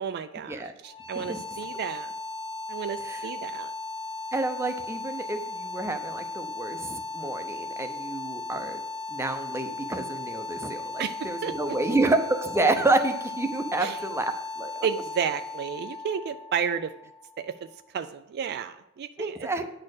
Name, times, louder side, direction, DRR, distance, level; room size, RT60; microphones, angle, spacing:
voice 1, 0.0-2.1 2.7-3.7 11.0-11.1 11.4-11.8 13.8-14.0 14.8-16.9 17.4-17.7 17.9-19.5, right 7 dB, 50° right, 10 dB, 0.3 m, -32 dB
sound 1, 0.8-17.8, left 3 dB, 25° left, 1.1 m, -37 dB
voice 2, 4.3-8.8 9.1-14.9 19.2-19.6, right 2 dB, 10° right, 6 dB, 0.6 m, -29 dB
9.7 x 4.3 x 6.5 m, 0.91 s
head